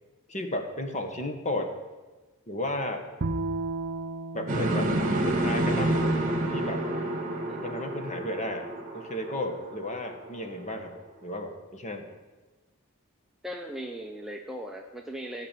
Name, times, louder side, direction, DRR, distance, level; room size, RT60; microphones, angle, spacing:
voice 1, 0.3-1.7 2.5-3.1 4.3-6.2 6.5-6.9 7.6-8.7 8.9-12.1, left 1 dB, 30° left, 5 dB, 1.4 m, -34 dB
Bowed string instrument, 3.2-6.5, right 2 dB, 55° right, 0.6 m, -35 dB
sound 1, 4.5-10.5, right 1 dB, 35° right, 1.7 m, -29 dB
voice 2, 13.4-15.5, equal, ahead, 1 dB, 0.6 m, -38 dB
15.0 x 5.9 x 9.1 m, 1.2 s
head